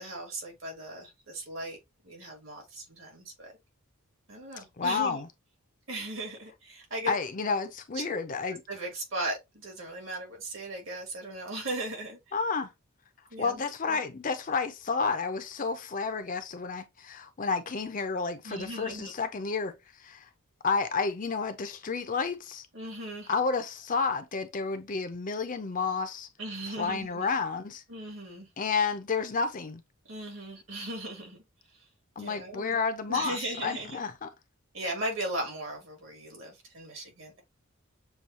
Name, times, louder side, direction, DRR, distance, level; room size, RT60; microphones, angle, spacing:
voice 1, 0.0-1.8 2.0-3.5 4.3-5.2 5.9-7.1 7.9-8.2 8.7-12.3 13.3-14.0 18.4-19.1 22.7-23.3 26.4-27.2 27.9-28.5 30.1-31.4 31.7-31.8 32.2-32.8 33.1-34.0 34.7-37.4, right 1 dB, 65° right, 2.2 m, -37 dB
voice 2, 4.6-5.3 7.1-8.6 12.3-12.7 13.4-20.3 20.6-22.7 23.3-26.3 26.8-27.8 28.6-29.8 32.2-34.3, left 4 dB, 40° left, 0.5 m, -31 dB
6.9 x 2.3 x 2.8 m
head